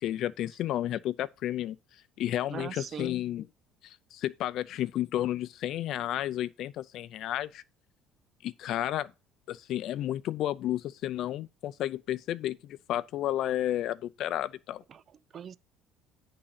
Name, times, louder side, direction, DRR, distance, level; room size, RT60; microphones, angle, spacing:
voice 1, 0.0-1.8 2.2-3.5 3.8-7.6 8.4-9.1 9.5-14.8, left 12 dB, 55° left, 0.5 m, -32 dB
voice 2, 2.5-3.1 14.9-15.6, right 8 dB, 35° right, 0.3 m, -41 dB
9.9 x 3.8 x 5.7 m
cardioid pair, 150°, 0 cm